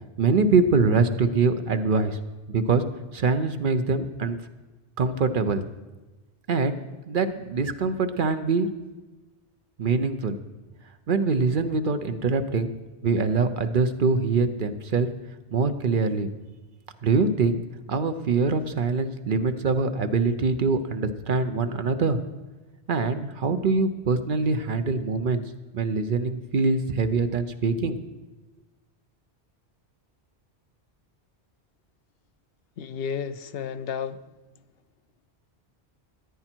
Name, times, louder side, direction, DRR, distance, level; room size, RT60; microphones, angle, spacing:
voice 1, 0.2-2.2 2.5-2.8 3.1-4.4 5.0-5.6 6.5-6.7 7.1-8.7 9.8-10.4 11.1-12.7 13.0-15.1 15.5-16.3 17.0-17.6 17.9-22.2 22.9-25.4 25.7-28.1, right 4 dB, 55° right, 9 dB, 0.8 m, -24 dB
voice 2, 32.8-34.2, left 7 dB, 70° left, 12 dB, 0.8 m, -32 dB
14.0 x 9.9 x 4.4 m, 1.2 s
omnidirectional pair, 1.1 m